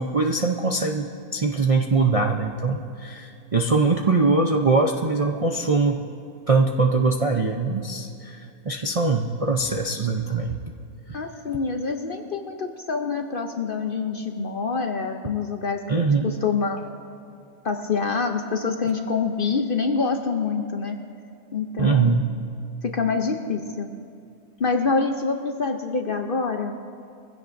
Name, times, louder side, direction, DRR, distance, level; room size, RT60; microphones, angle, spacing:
voice 1, 0.0-6.0 6.5-10.5 11.1-11.2 15.9-16.3 21.8-22.3, right 3 dB, 40° right, 0 dB, 0.5 m, -22 dB
voice 2, 11.1-16.8 17.6-21.0 21.5-22.1 22.8-23.9 24.6-26.8, left 4 dB, 50° left, 4 dB, 0.7 m, -26 dB
23.0 x 16.0 x 2.6 m, 2.5 s
omnidirectional pair, 1.5 m